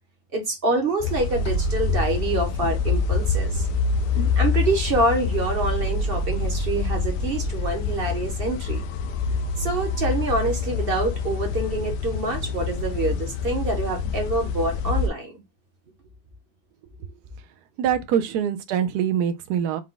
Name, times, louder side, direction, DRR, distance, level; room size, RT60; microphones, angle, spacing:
voice 1, 0.3-3.7 4.4-8.8 9.6-15.4, right 2 dB, 45° right, 0.8 m, -26 dB
sound 1, 1.0-15.1, left 4 dB, 75° left, 1.1 m, -26 dB
voice 2, 17.8-19.8, right 9 dB, 70° right, 1.0 m, -24 dB
4.8 x 2.2 x 3.8 m
omnidirectional pair, 2.1 m